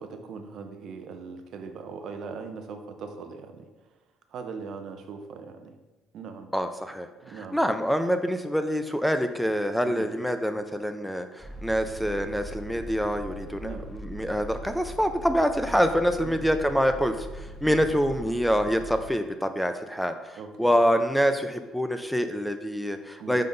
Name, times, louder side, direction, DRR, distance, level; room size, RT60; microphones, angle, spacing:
voice 1, 0.0-3.7 4.3-5.7 6.1-6.5 7.2-7.6 9.8-10.1 13.6-13.9 16.2-16.4 17.6-17.9 20.3-20.8 23.2-23.4, right 5 dB, 60° right, 6 dB, 0.7 m, -40 dB
voice 2, 6.5-23.4, equal, ahead, 8 dB, 0.3 m, -26 dB
sound 1, 11.4-19.0, right 1 dB, 15° left, 1.1 m, -41 dB
5.7 x 3.8 x 5.1 m, 1.2 s
cardioid pair, 115°, 0 cm